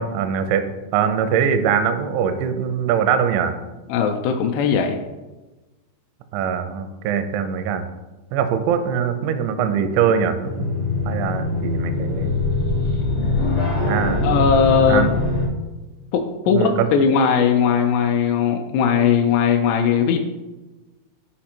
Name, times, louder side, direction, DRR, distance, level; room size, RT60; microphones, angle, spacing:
voice 1, 0.0-3.5 6.3-7.8 8.3-10.7 11.1-12.4 13.8-14.2 14.9-15.1 16.5-16.9, right 7 dB, 85° right, 9 dB, 2.9 m, -22 dB
voice 2, 3.9-5.0 14.2-15.0 16.1-20.2, left 6 dB, 85° left, 3 dB, 2.4 m, -18 dB
sound 1, 10.4-15.5, left 3 dB, 65° left, 1.5 m, -22 dB
7.3 x 5.0 x 4.4 m, 1.1 s
omnidirectional pair, 5.2 m